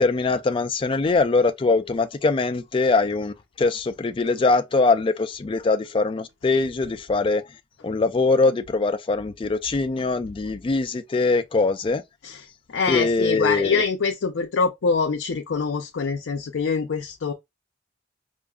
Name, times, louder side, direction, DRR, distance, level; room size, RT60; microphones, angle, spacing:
voice 1, 0.0-7.4 7.8-12.0 12.9-13.8, left 3 dB, 30° left, 0.3 m, -22 dB
voice 2, 12.2-17.3, left 5 dB, 85° left, 0.5 m, -25 dB
4.7 x 2.5 x 2.3 m
head